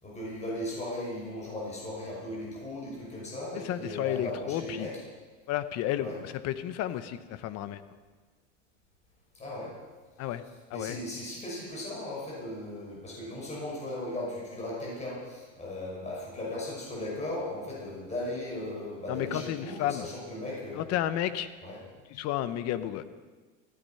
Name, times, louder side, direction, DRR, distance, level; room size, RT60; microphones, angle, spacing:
voice 1, 0.0-5.0 6.0-6.2 9.3-9.7 10.2-10.3 10.7-20.9 21.6-21.8, left 1 dB, 20° left, -4 dB, 6.0 m, -37 dB
voice 2, 3.6-4.9 5.5-7.8 10.2-10.4 10.7-11.0 19.1-20.1 20.8-21.5 22.1-23.0, left 12 dB, 45° left, 13 dB, 1.0 m, -32 dB
15.5 x 13.5 x 5.6 m, 1.4 s
supercardioid pair, 130°, 37 cm